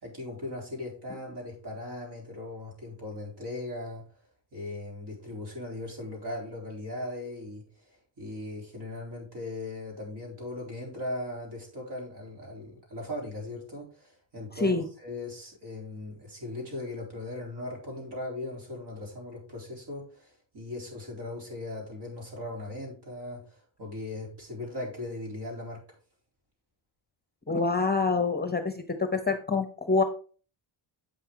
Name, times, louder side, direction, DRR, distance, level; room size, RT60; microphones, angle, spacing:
voice 1, 0.0-4.0 4.5-7.6 7.9-25.8, left 2 dB, 55° right, -1 dB, 3.9 m, -38 dB
voice 2, 27.5-28.8 29.1-30.0, left 3 dB, 20° left, 8 dB, 0.8 m, -26 dB
7.7 x 5.8 x 3.8 m, 0.40 s
cardioid pair, 95°, 48 cm